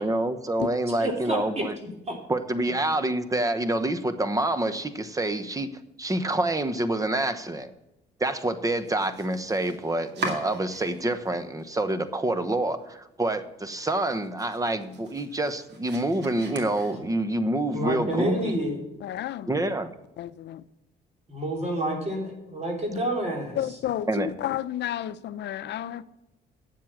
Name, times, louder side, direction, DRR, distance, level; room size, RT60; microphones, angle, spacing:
voice 1, 0.0-1.8 2.3-5.7 6.0-7.7 8.2-18.5 19.5-19.9 24.1-24.3, right 1 dB, 20° right, 1.0 m, -27 dB
voice 2, 0.9-2.2 17.7-18.8 21.3-23.6, right 1 dB, 35° right, 3.3 m, -29 dB
Domestic sounds home sounds, 8.7-11.3 11.6-12.3 12.7-12.8 13.2-13.3 13.7-17.4, right 2 dB, 65° right, 2.2 m, -40 dB
voice 3, 18.1-18.5 19.0-19.7 20.2-20.6 23.5-26.1, left 12 dB, 65° left, 0.6 m, -32 dB
9.0 x 7.5 x 7.3 m
cardioid pair, 95°, 19 cm